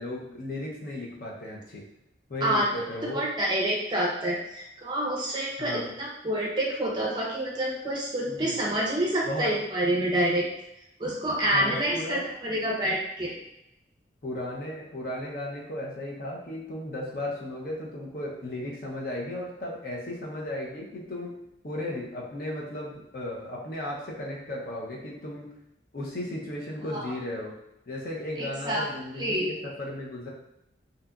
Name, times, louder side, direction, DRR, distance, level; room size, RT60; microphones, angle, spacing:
voice 1, 0.0-1.8 2.3-3.3 5.6-5.9 8.3-8.6 9.3-9.5 11.5-12.2 14.2-21.3 21.6-25.5 25.9-27.6 27.9-30.3, left 1 dB, 50° left, -3 dB, 0.5 m, -35 dB
voice 2, 3.1-10.5 11.0-13.4 26.9-27.1 28.4-28.9 29.2-29.5, right 1 dB, 25° right, -3 dB, 0.4 m, -27 dB
2.7 x 2.4 x 2.2 m, 0.86 s
head